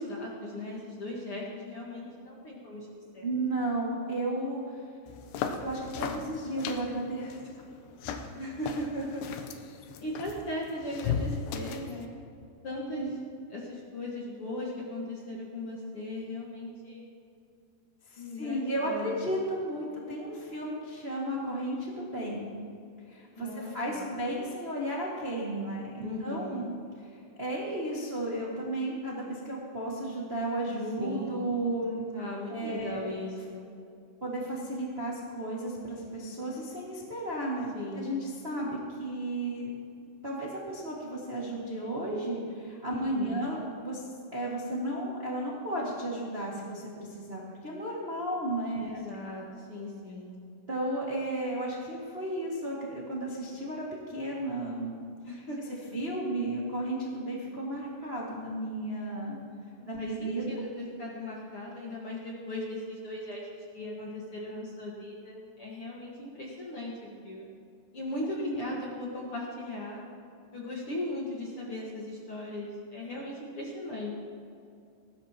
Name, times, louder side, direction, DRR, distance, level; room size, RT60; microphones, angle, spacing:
voice 1, 0.0-2.9 3.1-3.3 8.3-9.3 10.0-12.1 12.6-13.1 13.5-17.1 18.2-19.4 23.4-24.1 26.0-26.7 31.0-31.5 32.1-33.7 37.7-38.2 42.9-43.4 48.8-50.4 55.2-56.0 59.8-67.5 67.9-70.0 70.5-74.1, left 1 dB, 60° left, -4 dB, 1.5 m, -38 dB
voice 2, 3.2-4.6 5.6-7.4 13.0-13.1 18.1-22.5 23.1-32.0 32.5-33.1 34.2-37.7 37.9-39.7 40.2-44.0 44.3-46.8 47.1-49.0 50.7-55.0 55.9-59.4 59.9-60.6 68.3-68.7, right 1 dB, 45° right, -5 dB, 0.7 m, -34 dB
sound 1, 5.1-12.1, left 6 dB, 80° left, 2.9 m, -37 dB
19.5 x 15.5 x 3.0 m, 2.5 s
omnidirectional pair, 5.0 m